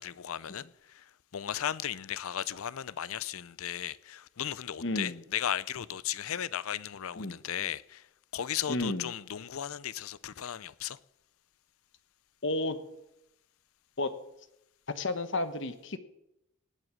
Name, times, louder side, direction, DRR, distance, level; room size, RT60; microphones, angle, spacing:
voice 1, 0.0-8.0 8.3-11.0, left 10 dB, 75° left, 0.5 m, -36 dB
voice 2, 4.8-5.2 7.2-7.4 8.7-9.1 12.4-12.8 14.0-14.1 14.9-16.0, left 2 dB, 55° left, 1.1 m, -32 dB
18.5 x 7.9 x 6.3 m
head